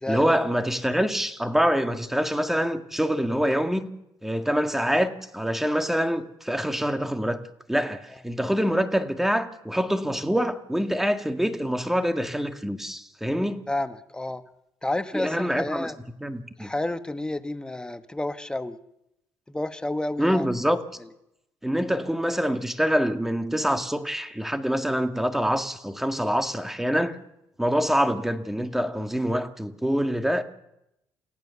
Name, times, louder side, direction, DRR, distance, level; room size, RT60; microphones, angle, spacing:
voice 1, 0.1-3.9 4.2-7.4 7.7-13.6 15.1-15.9 16.2-16.7 20.2-20.8 21.6-27.2 27.6-30.4, equal, 5° right, 1.8 m, -25 dB
voice 2, 13.7-14.4 14.8-16.0 16.6-18.8 19.5-20.5 27.7-27.8, left 1 dB, 10° left, 1.2 m, -30 dB
29.0 x 16.0 x 6.9 m
cardioid pair, 90°, 7 cm